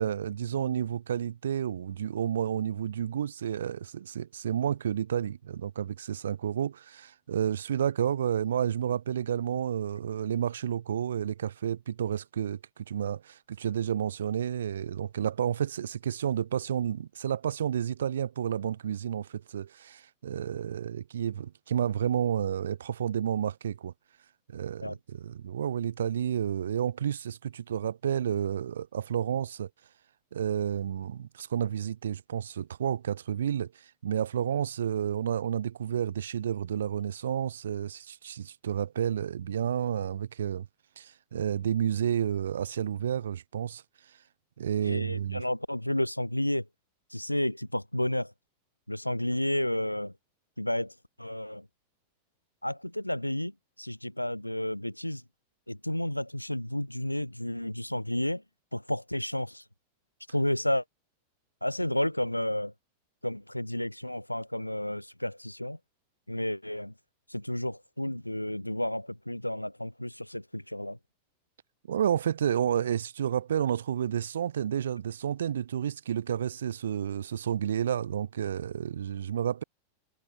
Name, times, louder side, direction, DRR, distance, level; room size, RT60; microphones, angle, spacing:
voice 1, 0.0-23.9 24.5-29.7 30.3-33.7 34.0-40.7 41.0-43.8 44.6-45.4 71.9-79.6, right 9 dB, 65° right, 1.0 m, -30 dB
voice 2, 44.8-46.7 47.1-48.3 48.9-50.1 50.6-51.7 52.6-55.2 55.7-58.4 58.7-59.6 60.3-60.8 61.6-62.7 63.2-65.8 66.3-66.9 67.3-71.0, left 1 dB, 90° left, 2.1 m, -31 dB
figure-of-eight pair, 90°, 0 cm